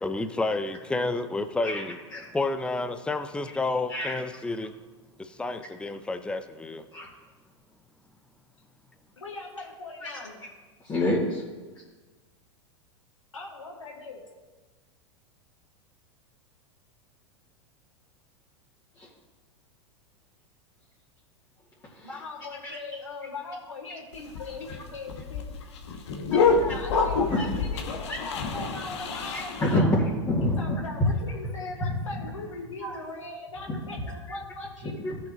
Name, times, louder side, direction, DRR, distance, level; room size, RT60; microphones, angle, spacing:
voice 1, 0.0-2.0 2.3-4.7 5.2-6.8, left 2 dB, 5° left, 8 dB, 0.6 m, -30 dB
voice 2, 9.2-10.4 13.3-14.3 22.0-25.5 26.1-29.9 30.6-35.0, left 3 dB, 80° left, -3 dB, 2.4 m, -40 dB
voice 3, 10.9-11.4 19.0-19.1 22.0-22.1 22.6-22.8 27.3-27.5 28.1-28.2 29.3-30.8 32.8-32.9 33.7-33.8 35.0-35.1, left 1 dB, 25° left, -7 dB, 2.5 m, -26 dB
sound 1, 24.1-29.8, left 4 dB, 65° left, 1.2 m, -27 dB
16.5 x 5.7 x 3.0 m, 1.3 s
figure-of-eight pair, 90°, 16 cm